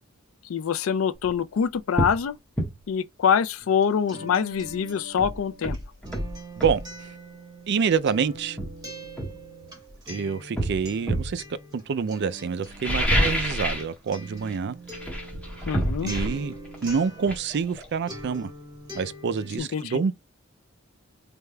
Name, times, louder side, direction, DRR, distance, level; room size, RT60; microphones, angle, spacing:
voice 1, 0.5-2.3 2.9-5.8 15.7-16.1 19.6-20.0, left 7 dB, 80° left, 0.4 m, -25 dB
sound 1, 1.1-1.3 1.9-2.2 2.6-2.7 4.6-4.7 5.2-6.8 7.9-8.0 8.6-10.0 10.6-11.4 12.7-13.9 14.2-14.6 14.9-18.4 18.7-18.8, equal, 5° left, 1.4 m, -28 dB
Acoustic guitar, 3.6-17.8 18.1-19.6, right 1 dB, 20° right, 2.0 m, -43 dB
voice 2, 7.7-8.6 10.1-11.4 11.7-14.7 16.0-16.6 16.8-18.5 18.9-20.2, right 6 dB, 55° right, 0.4 m, -27 dB
4.3 x 3.4 x 2.2 m
head